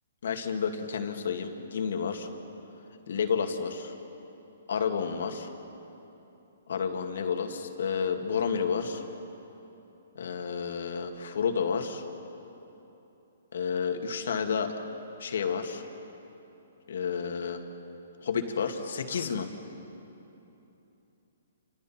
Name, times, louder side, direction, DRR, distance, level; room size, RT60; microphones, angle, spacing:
voice 1, 0.2-2.3 3.1-3.9 4.7-5.5 6.7-9.0 10.2-12.0 13.5-14.7 15.2-15.8 16.9-17.6 18.2-19.5, left 6 dB, 70° left, 5 dB, 2.1 m, -30 dB
29.5 x 26.0 x 4.4 m, 3.0 s
hypercardioid pair, 155°, 0 cm